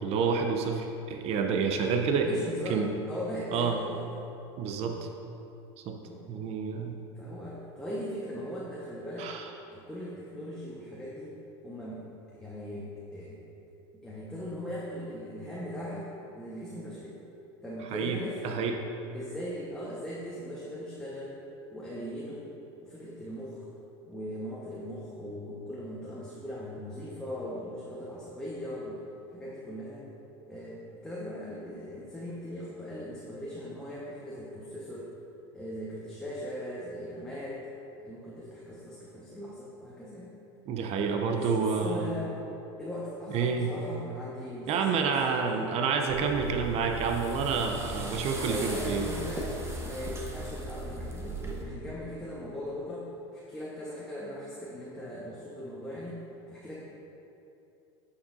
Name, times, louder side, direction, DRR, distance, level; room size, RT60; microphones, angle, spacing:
voice 1, 0.0-2.3 2.7-2.9 3.5-3.8 4.6-5.0 5.9-6.0 6.3-7.0 9.2-9.5 17.9-18.2 18.4-18.8 40.7-42.1 43.3-43.7 44.7-49.1, right 5 dB, 45° right, 4 dB, 0.7 m, -28 dB
voice 2, 1.8-4.0 4.8-4.9 6.0-6.3 7.2-9.3 9.7-11.3 11.6-12.1 12.3-13.4 14.0-17.1 17.6-18.6 19.1-21.4 21.7-22.5 22.8-23.7 24.1-29.0 29.3-30.1 30.5-35.1 35.5-37.6 38.0-40.3 41.3-42.4 42.8-45.1 45.4-45.7 48.5-49.5 49.8-56.2 56.5-56.7, equal, 5° left, -7 dB, 1.2 m, -39 dB
sound 1, 46.1-51.6, right 1 dB, 20° right, 1.1 m, -37 dB
9.1 x 6.4 x 2.7 m, 2.8 s
hypercardioid pair, 100°, 15 cm